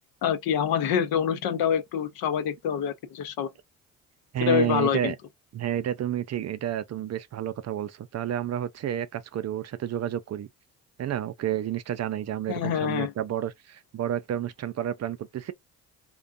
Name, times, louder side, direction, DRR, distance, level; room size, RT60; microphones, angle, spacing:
voice 1, 0.2-3.5 4.5-5.1 12.5-13.1, left 8 dB, 65° left, 0.7 m, -26 dB
voice 2, 4.3-5.2 5.5-10.5 11.0-15.5, right 11 dB, 40° right, 0.5 m, -30 dB
2.5 x 2.1 x 2.4 m
hypercardioid pair, 45°, 40 cm